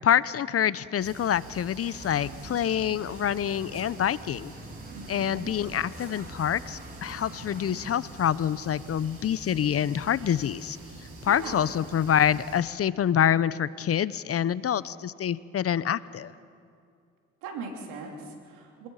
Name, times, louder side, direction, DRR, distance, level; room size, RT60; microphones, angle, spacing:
voice 1, 0.0-4.5 5.1-10.8 11.2-16.3, left 9 dB, 50° left, 18 dB, 0.7 m, -26 dB
sound 1, 1.0-12.6, right 2 dB, 50° right, 6.3 m, -45 dB
sound 2, 1.8-8.0, right 2 dB, 30° right, 3.1 m, -47 dB
sound 3, 2.8-4.0 5.9-6.4 7.4-7.6 8.4-8.6 9.6-10.5, left 4 dB, 80° left, 5.6 m, -58 dB
voice 2, 4.9-5.5 11.2-11.7 17.4-18.9, right 4 dB, 90° right, 1 dB, 3.3 m, -40 dB
26.0 x 20.5 x 5.7 m, 2.4 s
supercardioid pair, 60°, 30 cm